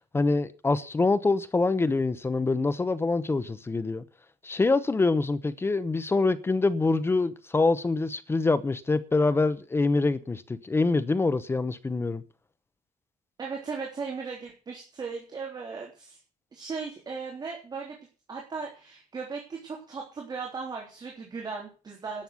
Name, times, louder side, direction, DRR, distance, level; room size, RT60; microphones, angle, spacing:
voice 1, 0.1-4.0 4.4-12.2, left 3 dB, 15° left, 0.8 m, -25 dB
voice 2, 13.4-16.2 16.5-18.0 18.3-22.2, right 5 dB, 30° right, 3.5 m, -37 dB
12.0 x 7.9 x 8.3 m
cardioid pair, 145°, 14 cm